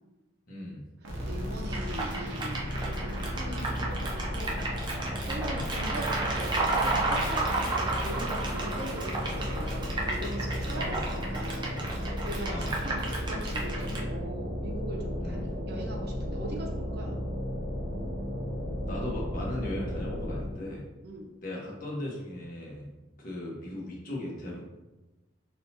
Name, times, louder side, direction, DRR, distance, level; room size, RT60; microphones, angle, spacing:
voice 1, 0.5-0.8 5.4-5.6 10.7-11.0 12.5-12.7 15.2-15.5 18.9-20.9 21.4-22.9 23.2-24.6, left 1 dB, 50° left, -3 dB, 1.2 m, -37 dB
voice 2, 1.0-5.0 5.3-12.0 12.3-17.2 21.0-21.3, right 1 dB, 60° right, 1 dB, 0.7 m, -41 dB
sound 1, 1.0-20.7, equal, 85° right, 0.9 m, -34 dB
sound 2, 1.7-14.0, right 3 dB, 25° right, 0.6 m, -33 dB
4.1 x 4.0 x 2.8 m, 1.1 s
head